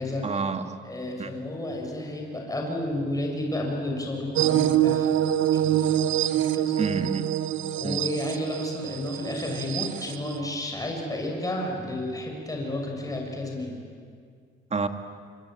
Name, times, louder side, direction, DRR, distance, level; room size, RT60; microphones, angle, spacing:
voice 1, 0.2-0.8 1.2-1.3 6.8-7.3 7.8-8.0 14.7-14.9, right 4 dB, 35° right, 7 dB, 2.0 m, -28 dB
voice 2, 0.8-6.7 7.7-13.8, left 1 dB, 15° left, 0 dB, 6.7 m, -32 dB
sound 1, 4.4-10.4, right 11 dB, 75° right, 1.0 m, -25 dB
26.0 x 24.5 x 9.0 m, 2.1 s
cardioid pair, 90°, 20 cm